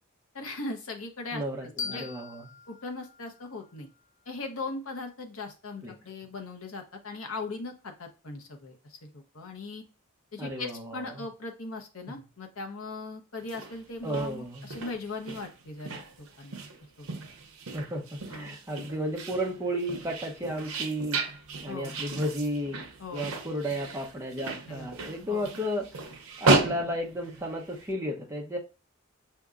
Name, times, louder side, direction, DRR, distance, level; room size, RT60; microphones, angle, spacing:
voice 1, 0.3-2.1 2.7-3.9 4.3-9.8 10.3-16.6 17.0-17.1 18.3-18.6 21.7-21.9 23.0-23.3 24.7-24.9 25.3-25.5, left 3 dB, 75° left, 3 dB, 0.9 m, -39 dB
voice 2, 1.3-2.5 5.8-6.0 10.4-11.3 12.1-12.2 14.0-14.7 17.7-21.2 21.6-22.8 23.1-25.9 26.4-28.6, equal, 15° right, 0 dB, 0.8 m, -33 dB
sound 1, 1.8-4.6, left 6 dB, 60° left, 0.5 m, -42 dB
sound 2, 13.4-27.9, right 3 dB, 85° right, 0.7 m, -34 dB
5.8 x 2.8 x 2.4 m, 0.32 s
head